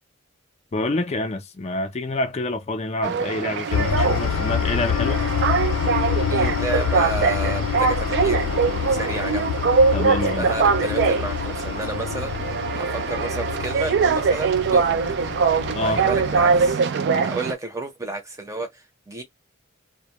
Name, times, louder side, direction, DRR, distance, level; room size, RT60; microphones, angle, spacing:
voice 1, 0.7-5.2 9.9-10.5 15.7-16.0, left 2 dB, 35° left, 0.5 m, -27 dB
sound 1, 3.0-17.5, right 5 dB, 60° right, 0.4 m, -22 dB
sound 2, 3.7-16.7, left 8 dB, 90° left, 0.3 m, -27 dB
voice 2, 6.3-9.5 10.3-15.0 15.8-16.8 17.2-19.2, right 2 dB, 15° right, 0.7 m, -31 dB
2.1 x 2.1 x 2.8 m
head